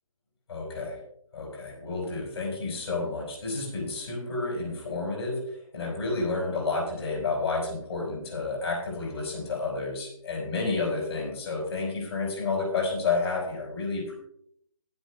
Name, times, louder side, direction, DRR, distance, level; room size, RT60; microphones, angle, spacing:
voice 1, 0.5-1.0 1.3-14.1, left 3 dB, 50° left, 0 dB, 5.5 m, -30 dB
16.0 x 11.5 x 2.3 m, 0.70 s
hypercardioid pair, 160°, 18 cm